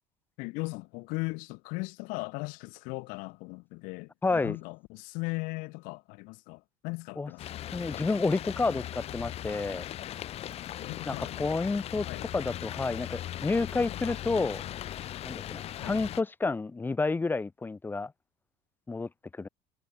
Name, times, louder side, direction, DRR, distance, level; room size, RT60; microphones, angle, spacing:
voice 1, 0.4-7.4 10.8-11.4 12.1-12.3 15.8-16.0, left 27 dB, 70° left, 4.3 m, -38 dB
voice 2, 4.2-4.6 7.2-7.3 7.7-9.9 11.1-12.1 12.3-14.6 15.2-18.1 18.9-19.5, left 3 dB, 15° left, 0.8 m, -30 dB
sound 1, 7.4-16.2, left 12 dB, 45° left, 1.0 m, -38 dB
supercardioid pair, 115°, 15 cm